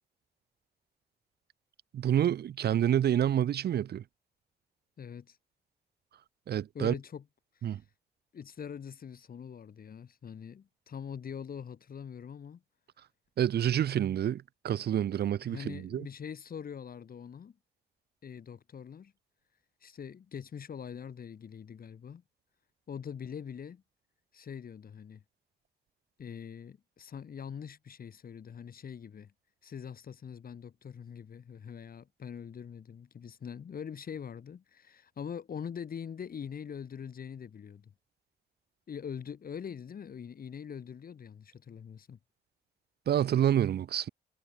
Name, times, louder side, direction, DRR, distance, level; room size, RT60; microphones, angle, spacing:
voice 1, 1.9-4.0 6.5-6.9 7.6-7.8 13.4-16.1 43.1-44.1, right 10 dB, 70° right, 0.9 m, -28 dB
voice 2, 5.0-5.4 6.7-7.2 7.6-7.8 8.3-12.6 15.4-17.6 18.2-19.1 19.8-22.2 22.9-23.8 24.3-25.2 26.2-29.3 29.6-37.9 38.9-42.2, left 7 dB, 60° left, 4.9 m, -43 dB
cardioid pair, 95°, 17 cm